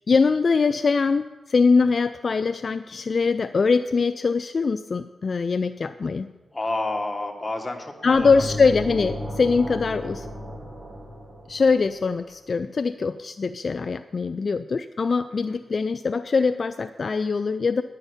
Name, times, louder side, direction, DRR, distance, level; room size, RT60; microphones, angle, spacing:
voice 1, 0.1-6.3 8.0-10.3 11.5-17.8, left 4 dB, 55° left, 11 dB, 0.3 m, -22 dB
voice 2, 6.5-8.4 15.4-15.6, left 2 dB, 20° left, 2 dB, 1.7 m, -30 dB
sound 1, 8.1-11.9, equal, 40° right, 2.0 m, -34 dB
10.5 x 5.7 x 8.1 m, 1.2 s
cardioid pair, 65°, 0 cm